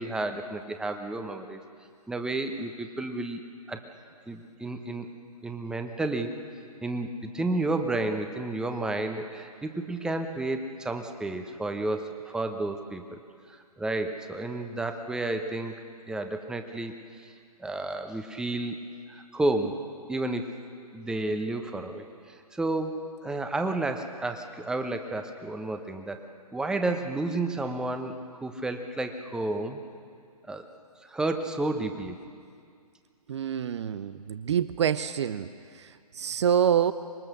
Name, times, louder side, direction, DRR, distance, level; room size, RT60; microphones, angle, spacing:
voice 1, 0.0-1.6 2.1-3.4 3.7-3.8 4.3-5.1 5.4-6.3 6.8-13.2 13.5-15.7 16.1-17.3 17.6-18.8 19.1-19.8 20.1-20.5 20.9-26.2 26.5-28.1 28.4-29.8 30.5-30.7 31.0-32.2, right 2 dB, 5° right, 6 dB, 1.1 m, -31 dB
voice 2, 33.3-36.9, right 8 dB, 45° right, 13 dB, 0.7 m, -27 dB
26.0 x 22.0 x 6.7 m, 2.2 s
figure-of-eight pair, 130°, 20 cm